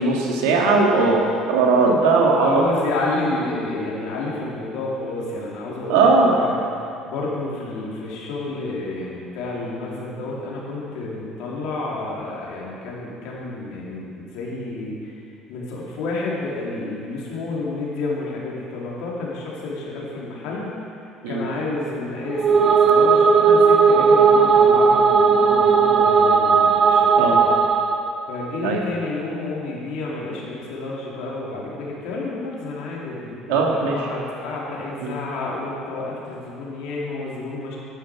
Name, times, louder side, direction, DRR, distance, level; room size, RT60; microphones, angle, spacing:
voice 1, 0.0-2.6 5.9-6.3 21.2-21.4 27.2-27.4 28.6-28.8 33.5-34.1 35.0-35.1, right 3 dB, 85° right, -1 dB, 1.8 m, -18 dB
voice 2, 2.4-6.1 6.4-6.6 7.0-15.1 15.5-20.7 21.3-27.3 28.3-37.8, left 2 dB, 75° left, -4 dB, 2.8 m, -30 dB
sound 1, 22.3-28.0, right 5 dB, 40° right, 1.0 m, -16 dB
11.0 x 9.8 x 4.7 m, 2.6 s
supercardioid pair, 85°, 0 cm